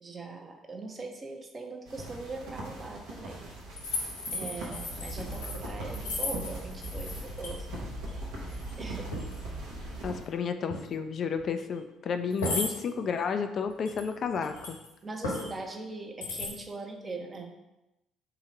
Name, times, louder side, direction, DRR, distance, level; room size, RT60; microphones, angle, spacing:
voice 1, 0.0-3.5 3.9-7.8 8.8-9.2 15.0-17.5, right 3 dB, 30° right, 3 dB, 0.8 m, -41 dB
sound 1, 1.8-10.2, right 2 dB, 75° right, 1.0 m, -42 dB
sound 2, 3.8-7.5 7.8-8.2 8.5-8.7 9.1-9.3 10.7-10.8 11.4-11.5 12.3-12.7 13.9-14.9 15.2-15.5 16.2-16.5, left 2 dB, 80° left, 1.1 m, -35 dB
sound 3, 4.9-10.1, equal, 30° left, 0.7 m, -41 dB
voice 2, 10.0-14.8, left 6 dB, 50° left, 7 dB, 0.3 m, -31 dB
3.7 x 2.9 x 4.3 m, 0.95 s
figure-of-eight pair, 50°, 0 cm